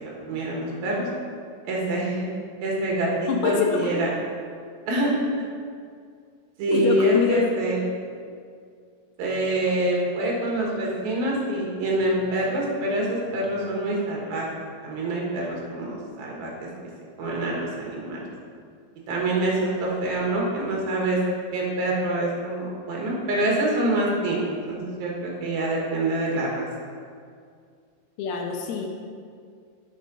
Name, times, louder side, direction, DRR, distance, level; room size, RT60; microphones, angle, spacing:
voice 1, 0.0-1.1 1.6-2.3 2.6-4.1 4.9-5.2 6.6-7.8 9.2-14.5 14.8-16.7 17.2-18.2 19.1-21.2 21.5-26.7, right 1 dB, 70° right, -3 dB, 3.3 m, -26 dB
voice 2, 3.3-3.9 6.7-7.5 7.9-8.0 28.2-28.9, left 6 dB, 80° left, 2 dB, 2.8 m, -25 dB
8.4 x 6.0 x 5.2 m, 2.2 s
omnidirectional pair, 4.5 m